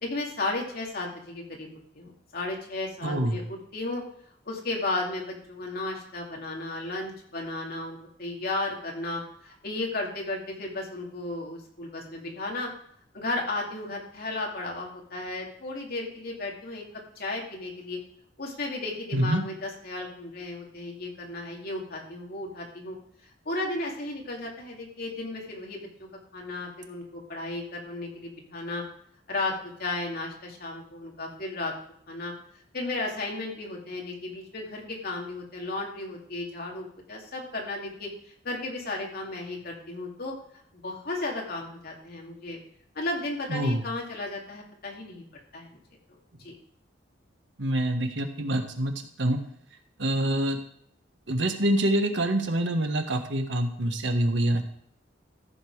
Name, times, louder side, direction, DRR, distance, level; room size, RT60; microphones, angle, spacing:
voice 1, 0.0-1.7 1.9-4.0 4.4-12.7 13.1-16.8 17.2-18.0 18.4-23.0 23.4-28.8 29.3-31.7 32.1-32.3 32.7-38.1 38.4-40.3 40.7-42.6 42.9-45.2 45.5-45.8 46.4-46.6, left 2 dB, 55° left, -1 dB, 2.7 m, -34 dB
voice 2, 3.0-3.4 19.1-19.4 43.5-43.8 47.6-48.9 49.2-49.4 50.0-50.6 51.3-54.6, right 1 dB, 70° right, 5 dB, 1.4 m, -26 dB
14.5 x 6.9 x 4.8 m, 0.66 s
head